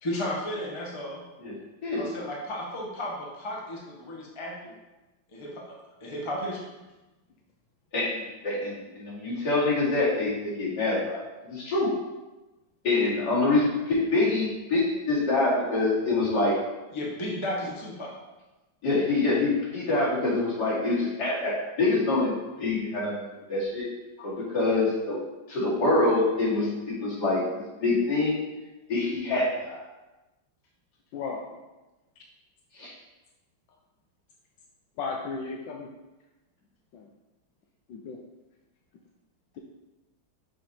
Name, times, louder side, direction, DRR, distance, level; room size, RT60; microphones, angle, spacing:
voice 1, 0.0-1.2 1.9-4.7 5.3-6.8 16.9-18.2, left 1 dB, 20° left, -3 dB, 1.0 m, -34 dB
voice 2, 7.9-11.9 12.8-16.6 18.8-23.2 23.5-23.9 24.2-25.2 25.5-28.4 28.9-29.8 32.7-32.9, left 2 dB, 60° left, -8 dB, 2.9 m, -25 dB
voice 3, 35.0-35.9 36.9-37.1 37.9-38.2, left 4 dB, 80° left, 1 dB, 1.4 m, -34 dB
6.6 x 4.5 x 4.2 m, 1.1 s
omnidirectional pair, 2.1 m